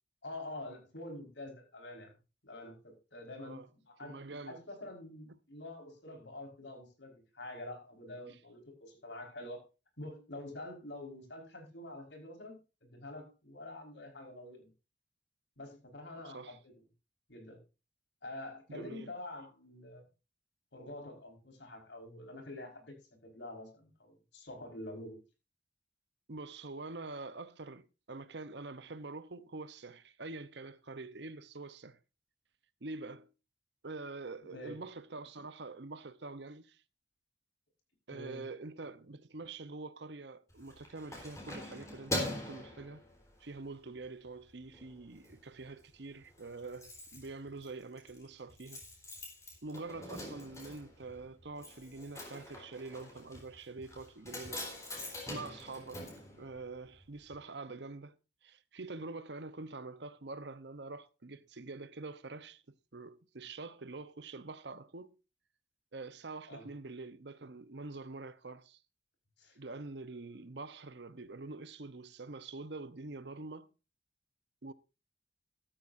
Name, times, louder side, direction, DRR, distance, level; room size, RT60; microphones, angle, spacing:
voice 1, 0.2-2.1 2.4-4.2 4.5-9.6 10.0-14.7 15.6-16.7 17.3-17.6 18.2-20.1 20.7-25.2 34.5-34.8 38.1-38.5 66.5-66.7 69.4-69.6, left 1 dB, 75° left, 4.8 m, -47 dB
voice 2, 4.0-4.6 16.2-16.6 18.7-19.1 26.3-32.0 32.8-33.3 33.8-36.8 38.1-43.0 43.4-48.8 49.6-54.7 55.3-56.1 56.4-58.2 58.4-62.6 62.9-65.1 65.9-68.8 69.6-73.7 74.6-74.7, right 3 dB, 70° right, 0.9 m, -45 dB
Keys jangling, 40.5-43.6 44.0-44.3 44.6-45.3 45.6-45.7 45.9-46.0 46.2-57.0 57.3-57.4, left 1 dB, 15° left, 4.0 m, -43 dB
14.0 x 12.5 x 2.6 m
head